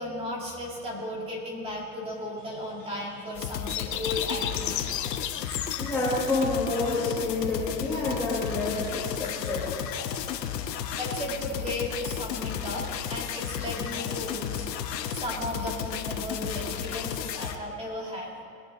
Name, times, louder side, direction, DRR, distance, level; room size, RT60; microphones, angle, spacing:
voice 1, 0.0-4.9 5.5-5.6 10.7-12.8 13.1-18.3, left 1 dB, 10° right, -3 dB, 1.9 m, -35 dB
sound 1, 2.4-8.8, left 11 dB, 35° left, 0.5 m, -36 dB
sound 2, 3.3-17.6, left 9 dB, 90° left, 1.3 m, -33 dB
voice 2, 5.8-9.6, left 2 dB, 5° left, -10 dB, 1.4 m, -28 dB
21.0 x 9.4 x 3.9 m, 2.3 s
supercardioid pair, 170°, 48 cm